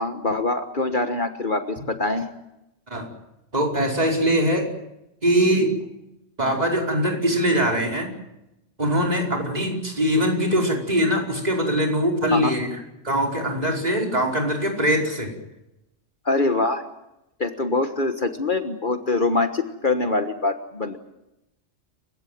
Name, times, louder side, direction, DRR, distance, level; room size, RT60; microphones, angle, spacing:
voice 1, 0.0-2.3 12.3-12.5 16.2-16.8 17.4-21.0, left 2 dB, 40° left, 8 dB, 1.5 m, -24 dB
voice 2, 3.5-4.7 5.2-5.7 6.4-8.1 8.8-12.7 13.0-15.3, equal, 30° right, 1 dB, 5.2 m, -22 dB
29.5 x 16.5 x 9.3 m, 0.90 s
omnidirectional pair, 1.3 m